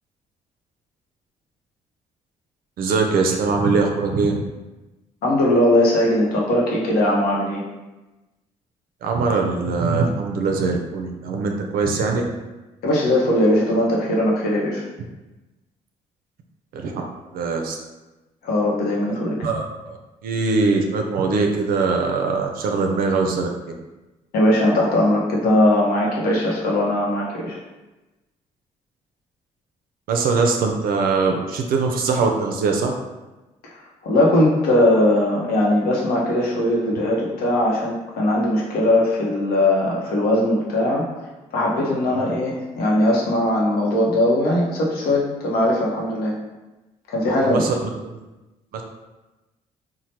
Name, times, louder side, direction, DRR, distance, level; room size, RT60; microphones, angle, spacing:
voice 1, 2.8-4.4 9.0-12.2 16.7-17.0 17.3-17.7 19.4-20.0 20.2-23.5 30.1-32.9 42.1-42.2 47.4-47.8 48.0-48.2 48.7-48.8, right 4 dB, 65° right, 2 dB, 0.4 m, -22 dB
voice 2, 5.2-7.7 12.8-14.8 18.4-19.4 24.3-27.6 34.0-41.1 41.5-46.3 47.1-47.7, left 1 dB, 70° left, -3 dB, 0.7 m, -19 dB
3.1 x 2.1 x 2.8 m, 1.1 s
hypercardioid pair, 55°, 16 cm